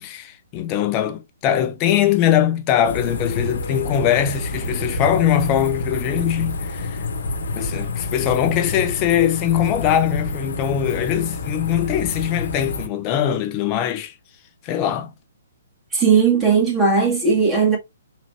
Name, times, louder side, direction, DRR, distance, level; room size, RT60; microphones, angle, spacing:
voice 1, 0.0-7.0 7.5-14.1 14.6-15.1, left 10 dB, 30° left, 0.9 m, -21 dB
sound 1, 2.8-12.9, left 2 dB, 65° left, 1.2 m, -28 dB
voice 2, 15.9-17.8, right 5 dB, 15° right, 2.0 m, -17 dB
4.2 x 3.0 x 2.8 m
hypercardioid pair, 135°, 0 cm